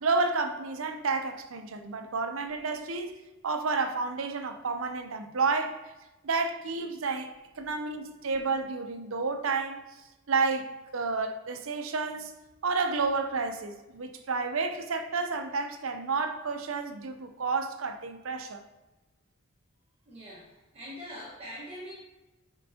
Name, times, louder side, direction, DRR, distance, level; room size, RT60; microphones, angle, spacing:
voice 1, 0.0-3.2 3.4-5.8 6.2-9.8 10.3-12.3 12.6-18.6, right 4 dB, 75° right, 0.7 m, -30 dB
voice 2, 20.1-21.9, equal, 30° right, 1.4 m, -43 dB
8.8 x 5.2 x 2.9 m
head